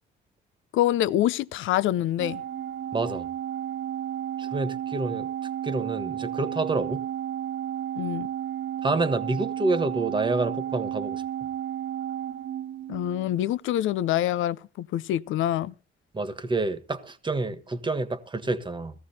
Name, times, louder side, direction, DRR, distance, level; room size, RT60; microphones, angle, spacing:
voice 1, 0.7-2.4 8.0-8.3 12.9-15.7, left 12 dB, 80° left, 0.6 m, -26 dB
Organ, 2.2-13.4, right 10 dB, 85° right, 1.8 m, -33 dB
voice 2, 2.9-3.3 4.4-5.3 5.6-7.0 8.8-11.2 16.1-18.9, right 3 dB, 25° right, 1.5 m, -28 dB
17.5 x 14.0 x 2.8 m
cardioid pair, 90°, 20 cm